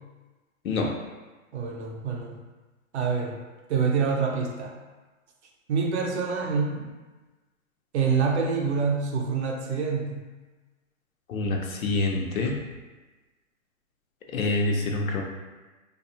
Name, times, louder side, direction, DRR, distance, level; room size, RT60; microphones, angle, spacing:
voice 1, 1.5-2.3 2.9-3.3 3.7-4.7 5.7-6.9 7.9-10.2, right 5 dB, 55° right, 0 dB, 0.5 m, -26 dB
voice 2, 11.3-12.6 14.3-15.2, left 2 dB, 85° left, 0 dB, 0.7 m, -26 dB
2.6 x 2.3 x 2.7 m, 1.2 s
hypercardioid pair, 160°, 41 cm